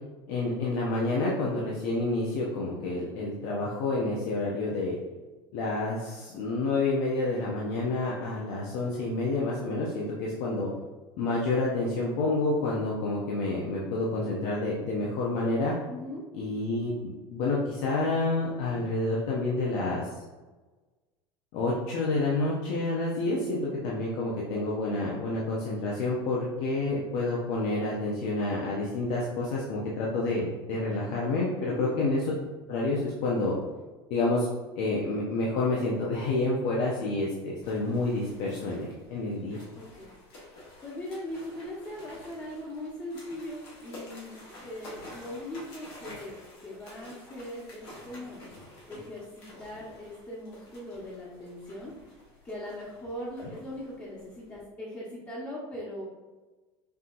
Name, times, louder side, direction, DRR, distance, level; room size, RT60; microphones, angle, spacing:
voice 1, 0.3-5.0 5.5-10.7 11.2-15.7 16.3-16.9 17.3-20.0 21.5-32.2 32.7-33.6 34.1-34.5 34.8-39.6 53.4-53.5, left 2 dB, 65° left, -4 dB, 0.8 m, -29 dB
voice 2, 15.9-16.2 31.7-31.9 39.7-40.1 40.8-44.4 44.6-48.4 48.9-51.9 52.4-56.1, left 1 dB, 25° left, -7 dB, 1.2 m, -40 dB
sound 1, 37.6-54.6, left 1 dB, 85° left, 1.4 m, -50 dB
5.7 x 2.8 x 2.6 m, 1.2 s
supercardioid pair, 95°, 13 cm